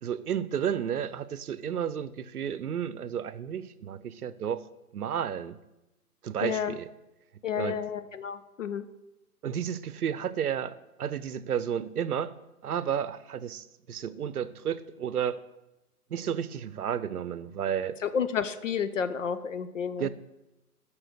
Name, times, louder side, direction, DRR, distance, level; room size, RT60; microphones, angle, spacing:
voice 1, 0.0-4.7 4.9-5.6 6.2-6.8 7.6-7.8 9.4-12.3 12.6-15.4 16.1-18.0 20.0-20.1, right 8 dB, 75° right, 16 dB, 0.7 m, -32 dB
voice 2, 6.4-6.8 7.4-8.9 18.0-20.1, left 7 dB, 55° left, 12 dB, 0.6 m, -31 dB
7.7 x 6.0 x 6.6 m, 0.97 s
hypercardioid pair, 150°, 46 cm